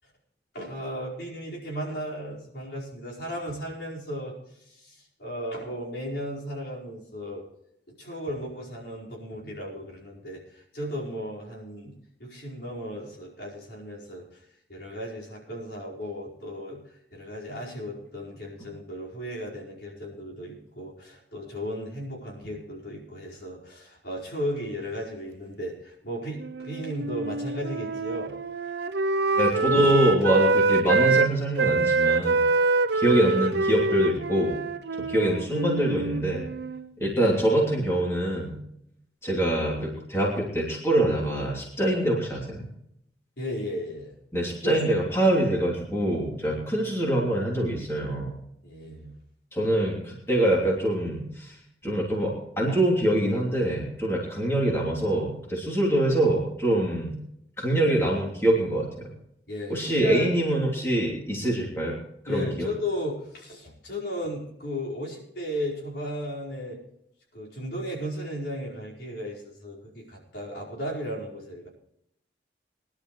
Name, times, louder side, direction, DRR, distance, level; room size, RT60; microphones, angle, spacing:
voice 1, 0.5-7.4 7.9-28.4 43.4-44.2 44.6-44.8 46.4-46.9 48.6-49.1 59.5-60.3 62.3-66.8 67.3-71.7, equal, 75° left, -4 dB, 5.0 m, -35 dB
Wind instrument woodwind instrument, 26.4-31.3 31.6-36.9, right 3 dB, 80° right, 0.6 m, -25 dB
voice 2, 29.4-32.4 32.9-34.6 35.0-36.5 37.0-38.6 39.2-42.7 44.3-48.3 49.5-57.2 57.6-59.1 59.7-62.0 62.2-62.7, right 1 dB, 15° left, -3 dB, 3.0 m, -25 dB
22.0 x 11.5 x 3.2 m, 0.75 s
head